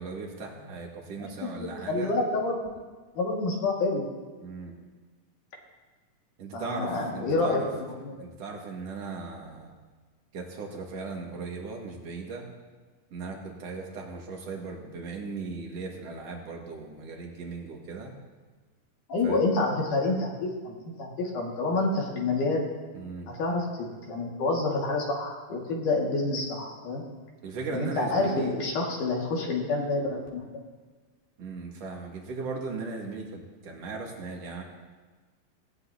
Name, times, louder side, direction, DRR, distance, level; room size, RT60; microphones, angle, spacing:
voice 1, 0.0-2.1 4.4-4.7 6.4-7.7 8.2-9.7 10.3-12.5 13.1-18.1 19.2-19.5 22.9-23.3 27.4-28.5 31.4-34.6, right 4 dB, 50° right, 0 dB, 2.6 m, -37 dB
voice 2, 1.2-1.5 1.9-2.7 3.2-4.0 6.5-8.3 19.1-22.7 23.4-27.0 27.7-30.4, left 2 dB, 65° left, -1 dB, 3.4 m, -28 dB
18.0 x 17.0 x 2.8 m, 1.4 s
omnidirectional pair, 4.0 m